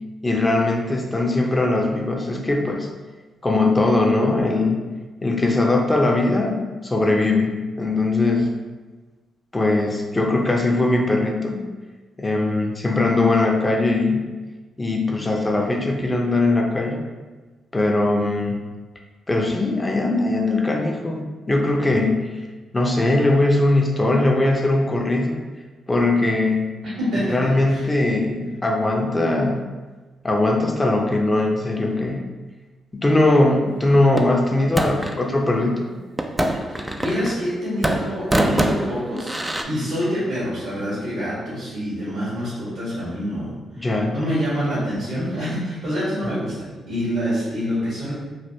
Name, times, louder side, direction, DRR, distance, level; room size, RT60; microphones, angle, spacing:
voice 1, 0.2-2.9 3.4-4.8 5.2-8.5 9.5-11.6 12.2-14.2 14.8-17.0 17.7-18.7 19.3-22.3 22.7-25.4 25.9-26.7 27.3-29.6 30.2-32.2 32.9-35.9 43.8-44.2, left 2 dB, 25° left, 0 dB, 0.6 m, -20 dB
voice 2, 27.0-27.9 36.7-48.1, equal, 75° right, -12 dB, 1.5 m, -26 dB
sound 1, 34.2-35.2 36.2-37.5 37.8-39.6, right 1 dB, 15° right, 0.4 m, -24 dB
3.3 x 2.5 x 2.7 m, 1.3 s
hypercardioid pair, 45°, 0 cm